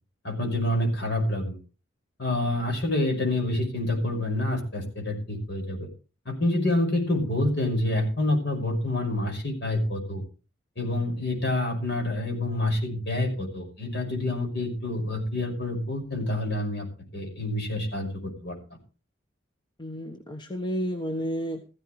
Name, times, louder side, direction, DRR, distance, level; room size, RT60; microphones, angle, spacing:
voice 1, 0.2-1.6 2.2-5.9 6.3-10.2 10.8-16.9 17.1-18.6, left 1 dB, 60° left, 3 dB, 5.8 m, -27 dB
voice 2, 19.8-21.6, equal, 25° left, 3 dB, 1.3 m, -31 dB
15.5 x 15.0 x 3.2 m, 0.34 s
head